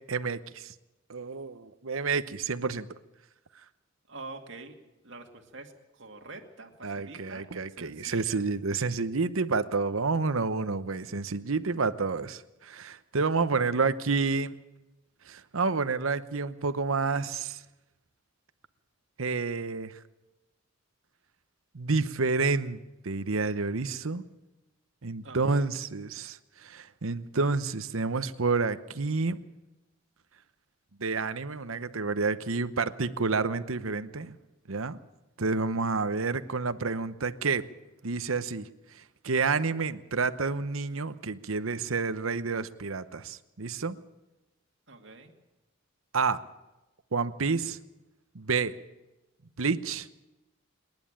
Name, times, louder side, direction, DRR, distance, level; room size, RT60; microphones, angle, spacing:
voice 1, 0.1-0.7 1.1-2.9 6.8-14.5 15.3-17.6 19.2-19.9 21.7-22.8 23.0-24.2 25.0-29.4 31.0-34.3 34.7-35.0 35.4-37.6 38.0-38.7 39.2-44.0 46.1-46.4 47.1-47.8 48.3-48.7 49.6-50.1, right 4 dB, 75° right, 12 dB, 0.9 m, -29 dB
voice 2, 4.1-4.8 5.0-8.4 25.2-25.7 44.9-45.3, right 3 dB, 60° right, 3 dB, 2.4 m, -46 dB
26.5 x 11.0 x 9.0 m, 1.0 s
head